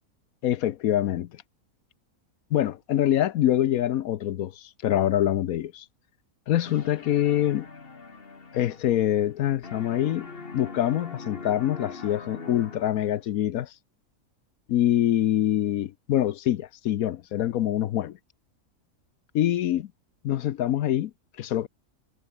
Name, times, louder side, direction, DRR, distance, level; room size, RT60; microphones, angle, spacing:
voice 1, 0.4-1.3 2.5-5.9 6.5-7.7 8.5-13.7 14.7-18.2 19.3-19.9 20.2-21.1 21.4-21.7, left 12 dB, 70° left, 1.1 m, -25 dB
sound 1, 6.6-9.4 9.6-13.2, left 4 dB, 35° left, 2.0 m, -42 dB
omnidirectional pair, 1.6 m